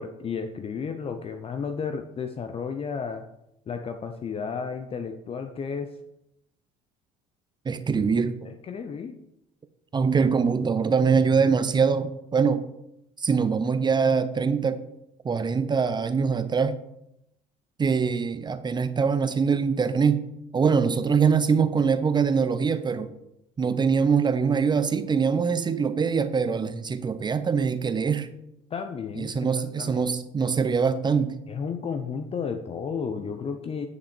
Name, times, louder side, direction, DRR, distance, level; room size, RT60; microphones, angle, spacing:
voice 1, 0.0-3.2 3.7-6.0 8.4-9.2 28.7-29.5 29.8-30.1 31.5-33.9, left 6 dB, 35° left, 7 dB, 0.7 m, -33 dB
voice 2, 7.7-8.5 9.9-12.7 13.2-14.8 15.2-16.8 17.8-20.2 20.5-23.1 23.6-28.3 29.2-31.3, right 5 dB, 25° right, 12 dB, 0.6 m, -23 dB
9.5 x 5.8 x 4.4 m, 0.84 s
supercardioid pair, 90°, 17 cm